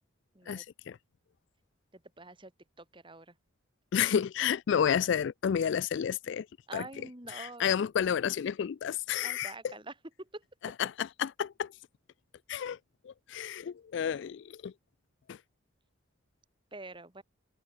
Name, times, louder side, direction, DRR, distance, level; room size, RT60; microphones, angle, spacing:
voice 1, 0.5-1.0 3.9-6.5 6.7-6.9 7.3-9.7 10.8-11.7 12.5-12.8 13.0-14.7 15.3-15.4, left 8 dB, 55° left, 0.3 m, -31 dB
voice 2, 1.9-2.5 2.8-3.3 6.7-7.8 9.2-10.4 16.7-17.2, right 2 dB, 25° right, 1.9 m, -46 dB
head